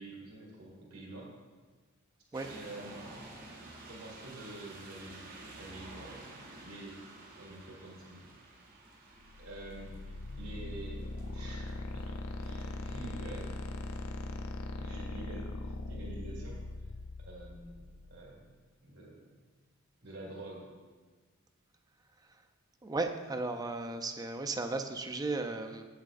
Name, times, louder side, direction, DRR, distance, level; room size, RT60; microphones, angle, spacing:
voice 1, 0.0-1.3 2.5-3.0 3.9-7.0 7.4-8.3 9.4-10.0 10.4-13.6 14.8-16.9 17.2-17.8 18.1-18.5 18.8-19.3 20.0-20.7, right 2 dB, 70° right, -4 dB, 1.9 m, -47 dB
sound 1, 2.3-14.4, right 2 dB, 40° right, 0.9 m, -52 dB
sound 2, 9.2-18.1, left 2 dB, 75° left, 0.5 m, -40 dB
voice 2, 22.8-25.8, right 3 dB, 20° right, 6 dB, 0.4 m, -35 dB
7.5 x 7.4 x 2.4 m, 1.4 s
head